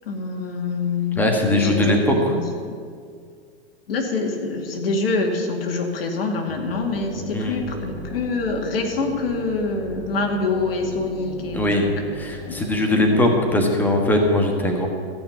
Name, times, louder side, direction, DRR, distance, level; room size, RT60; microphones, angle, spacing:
voice 1, 0.0-2.7 3.9-11.7 12.4-12.6 12.9-13.3, left 3 dB, 65° left, 3 dB, 2.3 m, -26 dB
voice 2, 1.1-2.3 7.3-7.6 11.5-11.9 12.2-14.9, left 1 dB, 5° left, 2 dB, 1.4 m, -20 dB
sound 1, 6.5-12.8, left 1 dB, 30° left, 2.7 m, -37 dB
14.0 x 5.7 x 9.1 m, 2.1 s
hypercardioid pair, 140°, 32 cm